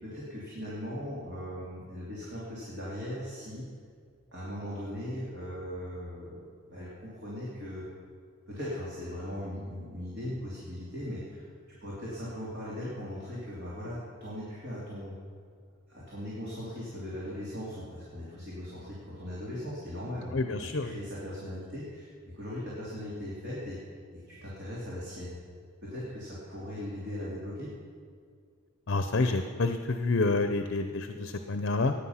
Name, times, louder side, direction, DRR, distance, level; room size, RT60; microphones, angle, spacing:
voice 1, 0.0-3.6 4.3-6.4 6.7-7.8 8.5-11.4 11.8-15.1 15.9-23.8 24.1-25.4 25.8-27.7, equal, 55° right, -7 dB, 3.0 m, -39 dB
voice 2, 20.3-21.0 28.9-31.9, left 3 dB, 60° left, 8 dB, 0.7 m, -28 dB
16.0 x 10.5 x 5.7 m, 2.1 s
head